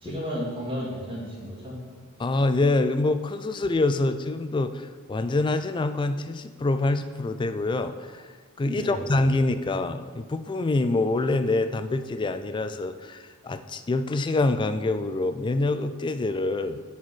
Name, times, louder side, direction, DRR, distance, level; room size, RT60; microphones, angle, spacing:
voice 1, 0.0-1.7 8.6-9.1, equal, 25° right, -6 dB, 2.3 m, -33 dB
voice 2, 2.2-8.3 8.6-16.8, left 2 dB, 20° left, 10 dB, 0.3 m, -26 dB
7.3 x 4.4 x 6.0 m, 1.5 s
head